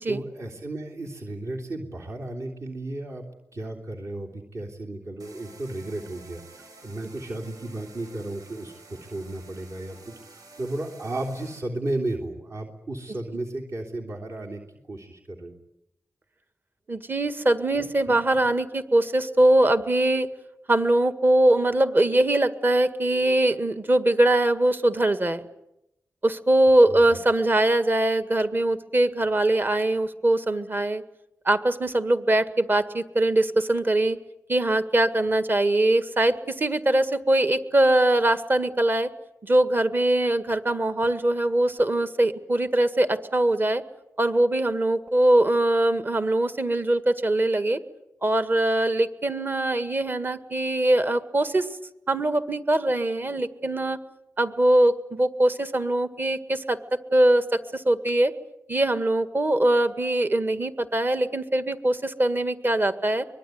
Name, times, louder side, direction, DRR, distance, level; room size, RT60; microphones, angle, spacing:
voice 1, 0.1-3.2 3.5-14.6 14.9-15.5 17.7-18.2 26.8-27.0, right 2 dB, 50° right, -1 dB, 3.4 m, -34 dB
sound 1, 5.2-11.6, right 3 dB, 80° right, 6.3 m, -50 dB
voice 2, 16.9-20.3 20.7-25.4 26.2-31.0 31.4-34.2 34.5-39.1 39.4-43.8 44.2-47.8 48.2-51.7 52.1-54.0 54.4-56.8 57.1-58.3 58.7-63.3, right 1 dB, 35° right, 10 dB, 1.8 m, -22 dB
24.0 x 21.0 x 9.4 m, 0.85 s
wide cardioid pair, 90°, 6 cm